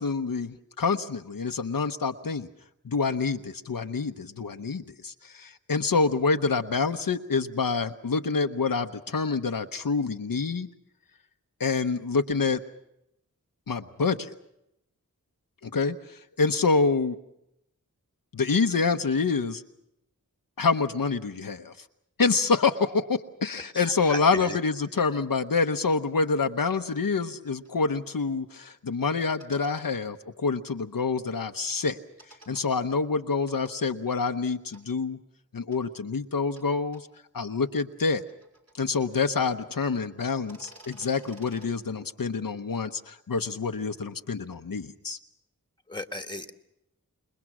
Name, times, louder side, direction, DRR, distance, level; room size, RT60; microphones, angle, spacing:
voice 1, 0.0-2.5 2.8-10.7 11.6-12.6 13.7-14.3 15.6-17.2 18.3-19.6 20.6-21.7 22.2-32.0 32.5-35.2 35.5-37.0 37.3-38.2 38.8-45.2, left 4 dB, 75° left, 6 dB, 0.9 m, -27 dB
voice 2, 23.7-24.6 45.9-46.5, left 1 dB, 15° left, 7 dB, 1.5 m, -35 dB
sound 1, 27.5-27.7 29.2-29.9 32.2-32.6 33.5-33.7 34.7-34.8 35.7-35.8 36.6-36.7 36.9-37.0 37.9-39.5 39.8-39.9 40.3-41.7, right 1 dB, 50° right, 5.9 m, -52 dB
27.5 x 21.0 x 6.1 m, 0.82 s
wide cardioid pair, 50°, 34 cm